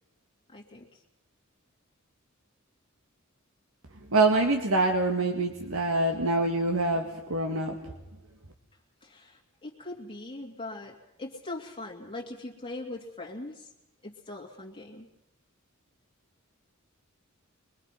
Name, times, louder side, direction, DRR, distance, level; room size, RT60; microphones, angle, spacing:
voice 1, 0.5-1.0 9.0-13.7 14.0-15.1, left 2 dB, 25° left, -2 dB, 2.3 m, -41 dB
voice 2, 4.1-7.8, right 2 dB, 80° right, 3 dB, 1.8 m, -25 dB
24.5 x 22.5 x 5.8 m, 0.89 s
head